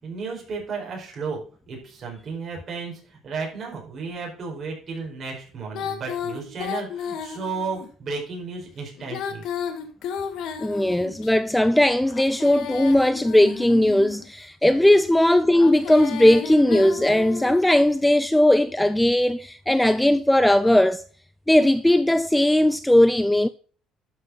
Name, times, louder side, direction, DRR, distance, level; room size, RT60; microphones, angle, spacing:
voice 1, 0.0-1.4 1.7-9.4 14.7-14.9, right 4 dB, 35° right, 4.6 m, -33 dB
Female singing, 5.7-7.9 9.0-11.3 12.1-14.2 15.5-17.7, left 8 dB, 60° left, 1.8 m, -33 dB
voice 2, 10.6-21.0 21.5-23.5, left 1 dB, 5° left, 0.3 m, -18 dB
12.0 x 5.8 x 3.8 m
cardioid pair, 165°, 0 cm